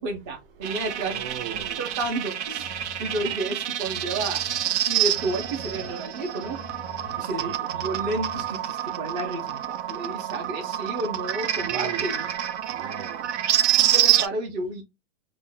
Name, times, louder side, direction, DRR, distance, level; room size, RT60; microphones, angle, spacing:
voice 1, 0.0-1.3 1.8-2.7 3.0-6.6 7.2-12.3 13.7-14.8, right 2 dB, 25° right, 0.5 m, -31 dB
sound 1, 0.6-14.3, right 12 dB, 85° right, 0.5 m, -27 dB
voice 2, 1.1-1.9 7.4-7.6 11.5-12.3 12.7-13.3, right 8 dB, 55° right, 0.8 m, -37 dB
sound 2, 2.0-2.1 2.6-3.4 3.8-4.6 5.1-5.9 6.4-7.2 7.7-8.5, left 5 dB, 50° left, 0.4 m, -44 dB
2.4 x 2.1 x 3.7 m
supercardioid pair, 165°, 33 cm